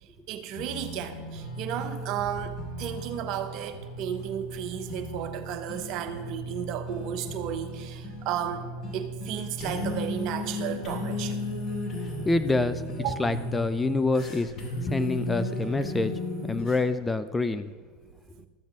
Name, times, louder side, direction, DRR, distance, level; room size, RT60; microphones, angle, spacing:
voice 1, 0.0-8.7 8.9-11.6 13.0-13.2, right 9 dB, 50° right, 8 dB, 0.9 m, -34 dB
sound 1, 0.5-16.8, left 1 dB, 40° left, 2.7 m, -35 dB
voice 2, 12.2-12.8 13.2-14.5 14.8-16.1 16.5-17.7, left 3 dB, 10° left, 11 dB, 0.4 m, -26 dB
13.0 x 7.2 x 3.6 m, 1.5 s
figure-of-eight pair, 80°, 0 cm